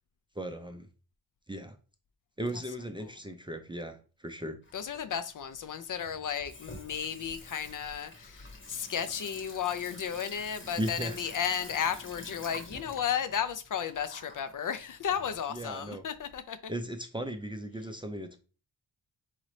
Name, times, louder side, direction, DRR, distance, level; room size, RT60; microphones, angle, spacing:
voice 1, 0.4-0.9 1.5-1.8 2.4-4.6 10.8-11.2 15.5-16.0 16.7-18.4, right 1 dB, 10° right, 0.4 m, -36 dB
Water tap faucet / Sink (filling or washing), 4.6-16.3, left 2 dB, 30° left, 1.0 m, -48 dB
voice 2, 4.7-16.7, left 8 dB, 50° left, 0.5 m, -34 dB
4.1 x 3.8 x 3.2 m
wide cardioid pair, 120°, 41 cm